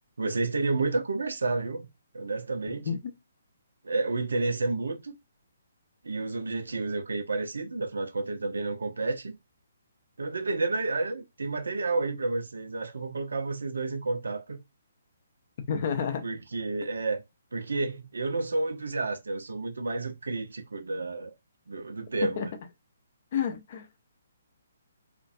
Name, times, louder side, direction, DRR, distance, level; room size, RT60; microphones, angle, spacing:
voice 1, 0.2-1.9 2.1-2.9 3.8-5.1 6.0-9.3 10.2-14.6 16.2-17.2 17.5-21.3 21.7-22.5, right 3 dB, 65° right, 0.5 m, -30 dB
voice 2, 15.7-16.3 22.2-22.5 23.3-24.0, left 7 dB, 40° left, 0.5 m, -30 dB
2.3 x 2.2 x 2.5 m
figure-of-eight pair, 135°, 0 cm